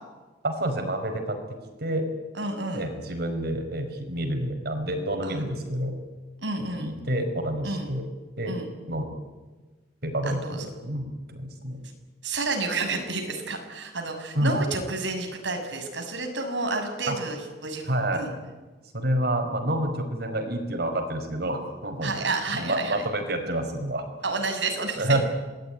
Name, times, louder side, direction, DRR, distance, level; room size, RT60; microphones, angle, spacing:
voice 1, 0.4-2.1 2.7-5.9 6.8-8.0 8.4-8.6 8.9-9.1 10.0-11.8 14.4-14.6 17.1-17.2 17.8-18.2 18.9-22.1 22.5-24.0 25.0-25.2, right 1 dB, 60° right, 6 dB, 5.5 m, -28 dB
voice 2, 2.3-2.9 5.2-5.4 6.4-6.9 7.6-7.9 8.5-8.7 10.2-10.7 12.2-18.3 22.0-23.1 24.2-25.2, right 3 dB, 90° right, 4 dB, 6.7 m, -30 dB
27.5 x 20.0 x 9.9 m, 1.3 s
head